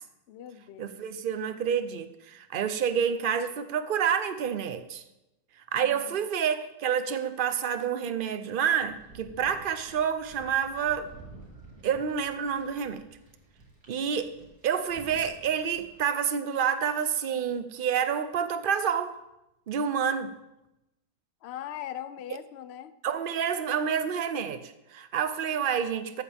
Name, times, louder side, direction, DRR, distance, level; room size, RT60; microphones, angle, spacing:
voice 1, 0.3-1.0 5.8-6.2 21.4-23.0, left 11 dB, 55° left, 12 dB, 0.8 m, -40 dB
voice 2, 0.8-5.0 5.7-11.1 11.8-13.0 13.9-14.3 14.6-19.2 19.7-20.4 23.0-26.2, right 7 dB, 45° right, 10 dB, 0.8 m, -28 dB
sound 1, 8.8-16.0, right 2 dB, 75° right, 3.0 m, -51 dB
14.0 x 12.0 x 3.6 m, 0.92 s
omnidirectional pair, 1.6 m